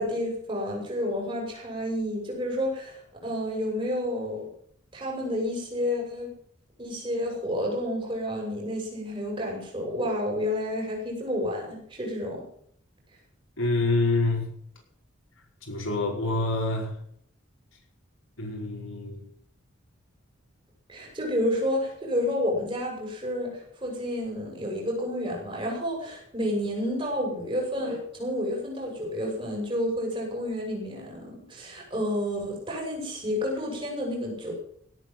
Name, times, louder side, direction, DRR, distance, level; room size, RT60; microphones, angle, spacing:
voice 1, 0.0-4.5 4.9-6.3 6.8-12.4 20.9-34.5, left 1 dB, 25° right, 6.4 m, -30 dB
voice 2, 13.6-14.5 15.7-16.9 18.4-19.2, left 2 dB, 80° left, 5.2 m, -26 dB
17.0 x 8.5 x 7.6 m
head